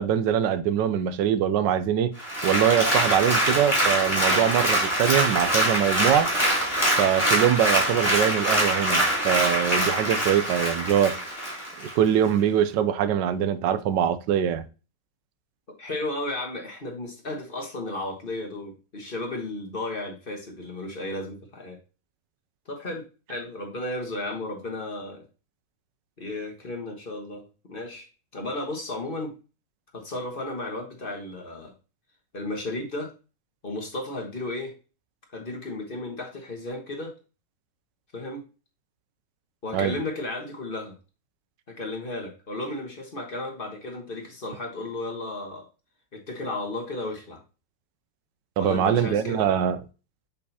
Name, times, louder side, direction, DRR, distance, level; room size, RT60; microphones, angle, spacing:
voice 1, 0.0-2.1 2.4-6.3 7.0-11.2 11.8-14.6 39.7-39.9 48.6-49.8, right 9 dB, 90° right, 1.3 m, -23 dB
Applause, 2.2-11.9 12.4-12.5, right 1 dB, 10° left, 3.3 m, -24 dB
voice 2, 15.8-21.8 22.7-25.2 26.2-28.1 28.3-29.3 29.9-31.7 32.3-33.1 33.6-34.7 35.3-37.1 38.1-38.4 39.6-40.9 41.7-45.6 46.1-47.4 48.6-49.5, left 2 dB, 30° left, 1.4 m, -34 dB
6.4 x 5.6 x 2.8 m
omnidirectional pair, 1.9 m